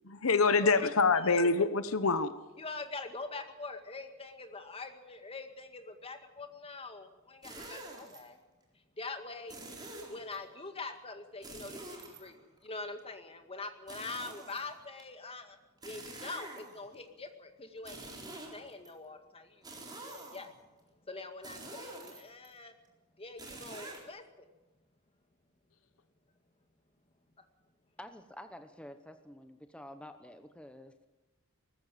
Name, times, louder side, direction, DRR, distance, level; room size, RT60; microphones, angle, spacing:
voice 1, 0.0-2.3, left 4 dB, 75° left, 13 dB, 1.0 m, -26 dB
voice 2, 0.6-1.5 2.6-8.4 8.7-9.6 10.1-15.6 15.8-20.5 21.0-22.8 23.2-24.2, left 3 dB, 30° left, 7 dB, 2.0 m, -44 dB
sound 1, 7.4-8.2 9.5-10.4 11.4-12.7 13.9-15.0 15.8-16.9 17.8-18.9 19.6-20.6 21.4-22.5 23.4-24.0, right 2 dB, 20° right, 4.1 m, -47 dB
voice 3, 28.0-30.9, left 1 dB, 5° left, 8 dB, 0.9 m, -49 dB
19.5 x 14.5 x 9.2 m, 1.1 s
head